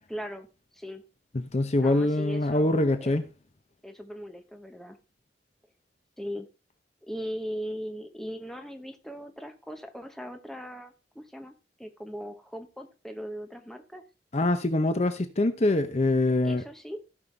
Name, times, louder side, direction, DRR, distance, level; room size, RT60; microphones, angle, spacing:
voice 1, 0.1-0.5 0.7-1.0 1.8-3.2 3.8-5.0 6.2-6.5 7.1-14.0 16.4-17.0, equal, ahead, 1.1 m, -39 dB
voice 2, 1.3-3.2 14.3-16.6, left 2 dB, 40° left, 0.7 m, -24 dB
16.0 x 5.6 x 3.3 m
head